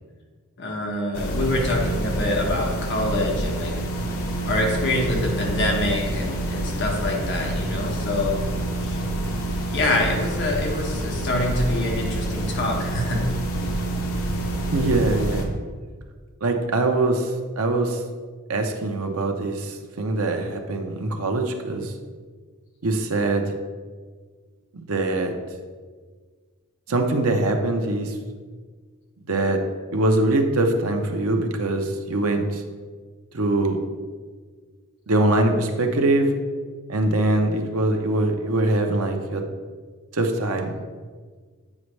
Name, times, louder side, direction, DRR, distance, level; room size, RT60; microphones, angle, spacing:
voice 1, 0.6-3.8 4.4-8.4 8.8-9.0 9.7-13.2, left 1 dB, 55° left, 0 dB, 1.3 m, -25 dB
sound 1, 1.1-15.5, right 1 dB, 70° left, 0.9 m, -27 dB
voice 2, 14.7-15.5 16.4-17.3 17.6-18.0 18.5-21.9 22.8-23.5 24.9-25.3 26.9-28.1 29.3-29.6 29.9-32.6 33.3-33.8 35.1-36.3 36.9-39.4 40.1-40.7, right 2 dB, 75° right, 4 dB, 0.8 m, -22 dB
8.5 x 5.2 x 3.2 m, 1.5 s
head